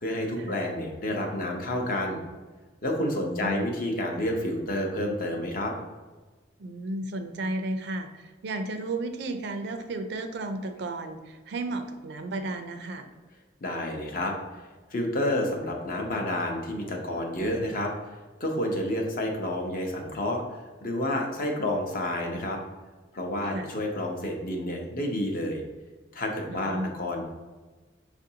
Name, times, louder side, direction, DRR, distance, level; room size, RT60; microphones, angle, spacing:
voice 1, 0.0-2.2 2.8-5.7 13.6-14.3 14.9-18.1 18.4-22.6 23.1-25.6 26.1-27.2, left 1 dB, 50° left, 1 dB, 0.7 m, -29 dB
voice 2, 3.2-3.8 6.6-13.1 23.5-23.7 26.5-27.0, right 2 dB, 65° right, 7 dB, 0.4 m, -33 dB
6.1 x 2.5 x 2.7 m, 1.3 s
head